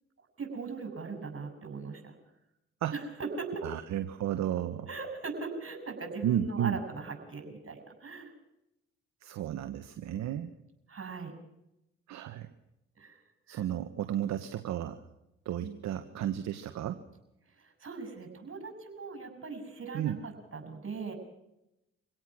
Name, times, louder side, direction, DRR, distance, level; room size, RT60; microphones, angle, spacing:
voice 1, 0.4-2.1 2.9-3.7 4.9-8.3 10.9-11.3 13.0-13.2 13.5-13.6 15.6-15.8 17.5-21.1, right 4 dB, 45° right, 6 dB, 6.9 m, -40 dB
voice 2, 3.6-4.9 6.2-6.8 9.2-10.5 12.1-12.5 13.5-15.0 15.4-17.0 19.9-20.2, right 10 dB, 65° right, 9 dB, 1.3 m, -33 dB
25.5 x 17.0 x 6.2 m, 0.88 s
hypercardioid pair, 55°, 30 cm